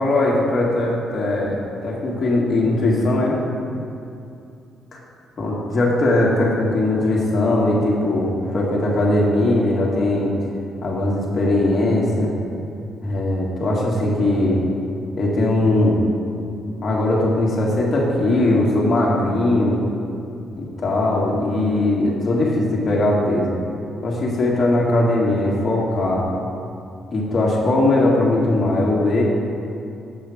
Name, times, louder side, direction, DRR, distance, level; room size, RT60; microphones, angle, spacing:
voice 1, 0.0-3.4 5.4-10.3 10.8-12.3 13.0-14.6 15.2-16.0 16.8-19.8 20.6-23.6 24.0-26.3 27.1-29.2, left 1 dB, 40° left, -4 dB, 1.9 m, -19 dB
7.5 x 6.1 x 5.0 m, 2.6 s
cardioid pair, 90°, 0 cm